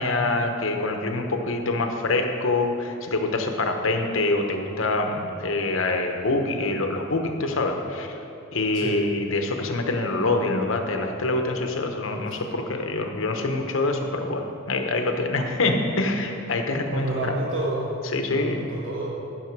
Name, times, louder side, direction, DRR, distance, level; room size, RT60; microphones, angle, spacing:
voice 1, 0.0-8.2 8.5-17.3 18.1-18.7, left 2 dB, 80° left, 4 dB, 1.0 m, -25 dB
voice 2, 16.9-17.9 18.3-19.1, right 2 dB, 75° right, -4 dB, 1.2 m, -29 dB
14.5 x 6.4 x 4.7 m, 2.9 s
head